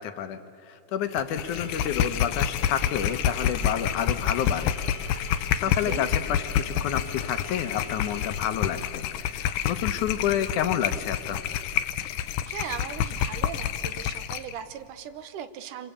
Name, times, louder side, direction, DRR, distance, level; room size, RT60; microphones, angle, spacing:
voice 1, 0.0-4.8 5.5-11.4, left 9 dB, 70° left, 9 dB, 2.4 m, -29 dB
sound 1, 1.1-14.5, left 9 dB, 90° left, 2.5 m, -28 dB
sound 2, 1.4-8.5, left 1 dB, 20° left, 2.3 m, -46 dB
voice 2, 5.7-6.0 12.5-15.9, right 9 dB, 75° right, 11 dB, 2.5 m, -38 dB
27.0 x 25.0 x 8.6 m, 2.4 s
omnidirectional pair, 3.7 m